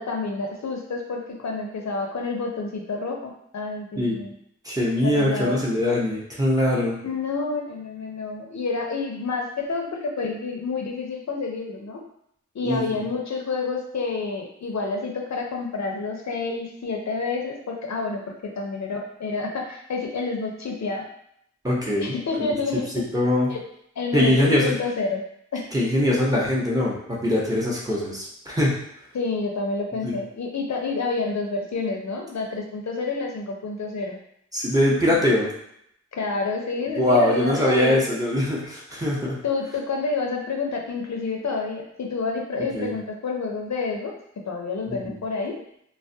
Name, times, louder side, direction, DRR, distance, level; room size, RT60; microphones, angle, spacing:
voice 1, 0.0-4.3 5.0-5.6 7.0-12.0 12.5-21.1 22.0-23.0 23.5-23.6 24.0-25.2 25.5-25.6 29.1-34.2 36.1-38.0 39.4-44.1 44.5-45.6, left 4 dB, 70° left, 1 dB, 0.5 m, -29 dB
voice 2, 4.6-7.0 12.6-13.0 21.6-23.5 24.1-24.7 25.7-28.8 30.0-30.2 34.5-35.5 37.0-39.4 42.7-42.9 44.9-45.2, left 1 dB, 10° right, -5 dB, 0.7 m, -22 dB
2.3 x 2.1 x 2.6 m, 0.72 s
wide cardioid pair, 50°, 29 cm